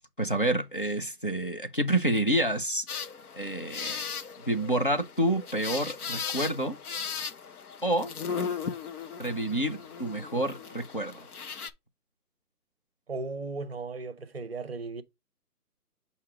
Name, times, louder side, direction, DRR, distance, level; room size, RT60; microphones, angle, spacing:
voice 1, 0.2-2.9 3.4-4.0 4.5-6.8 7.8-8.1 9.2-11.2, right 1 dB, 35° left, 0.4 m, -28 dB
sound 1, 2.9-11.7, left 6 dB, 70° left, 0.9 m, -37 dB
voice 2, 13.1-15.0, right 3 dB, 40° right, 0.6 m, -36 dB
7.1 x 2.8 x 4.7 m
hypercardioid pair, 175°, 46 cm